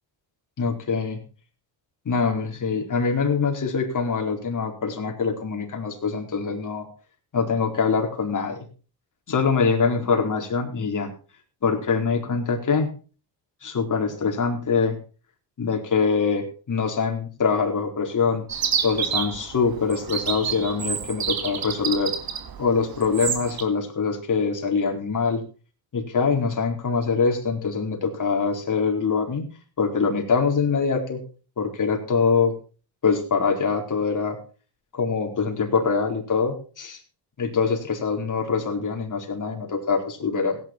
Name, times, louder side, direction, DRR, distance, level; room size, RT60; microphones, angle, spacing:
voice 1, 0.6-1.2 2.0-6.9 7.3-8.7 9.3-11.1 11.6-12.9 13.6-15.0 15.6-18.4 18.8-22.1 22.6-25.4 25.9-29.4 29.8-31.2 31.6-32.5 33.0-34.4 34.9-37.0 37.4-40.6, left 5 dB, 45° left, 2 dB, 4.3 m, -24 dB
Chirp tweet, 18.5-23.6, right 7 dB, 55° right, 2.4 m, -29 dB
16.5 x 10.0 x 4.4 m, 0.37 s
cardioid pair, 100°, 42 cm